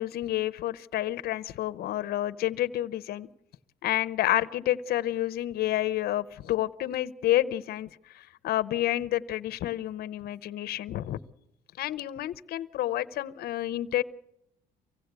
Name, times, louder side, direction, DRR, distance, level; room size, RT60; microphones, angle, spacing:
voice 1, 0.0-3.3 3.8-11.2 11.8-14.0, left 14 dB, 65° left, 17 dB, 0.8 m, -29 dB
24.5 x 16.0 x 8.2 m, 0.86 s
cardioid pair, 110°, 17 cm